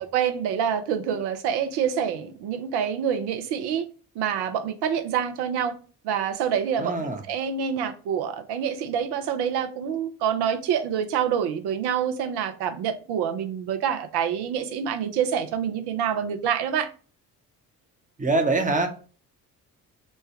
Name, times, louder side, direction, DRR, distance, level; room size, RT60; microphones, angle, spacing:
voice 1, 0.1-3.8 4.1-5.7 6.0-7.0 7.3-16.9, right 8 dB, 55° right, 0.7 m, -26 dB
voice 2, 6.8-7.2 18.2-18.9, right 2 dB, 15° right, 0.9 m, -23 dB
3.3 x 2.2 x 4.2 m
figure-of-eight pair, 45°, 46 cm